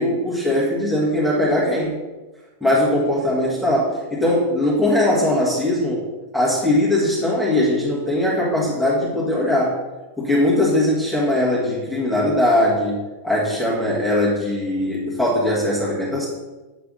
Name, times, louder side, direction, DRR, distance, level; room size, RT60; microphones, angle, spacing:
voice 1, 0.0-1.9 2.6-6.1 6.3-9.8 10.2-16.3, left 1 dB, ahead, -8 dB, 1.7 m, -20 dB
8.0 x 3.3 x 3.9 m, 1.2 s
figure-of-eight pair, 90°, 0 cm